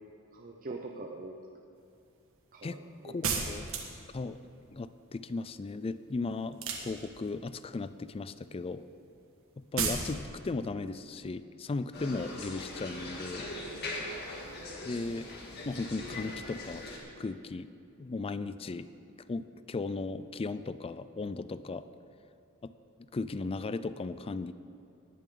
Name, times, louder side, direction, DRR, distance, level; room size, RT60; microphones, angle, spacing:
voice 1, 0.3-1.4 2.5-3.2 14.0-14.3, right 3 dB, 40° right, 1 dB, 0.7 m, -43 dB
voice 2, 3.0-3.6 4.1-4.4 4.7-8.8 9.7-13.5 14.8-15.3 15.7-16.8 17.2-17.7 18.0-18.9 19.3-21.8 22.6-22.7 23.1-24.5, left 3 dB, 25° left, 13 dB, 0.4 m, -36 dB
sound 1, 3.2-4.1 6.5-7.4 9.8-10.1, right 5 dB, 65° right, 1.6 m, -32 dB
sound 2, 11.9-17.0, left 2 dB, 50° left, 2.1 m, -41 dB
19.0 x 10.5 x 3.9 m, 2.5 s
head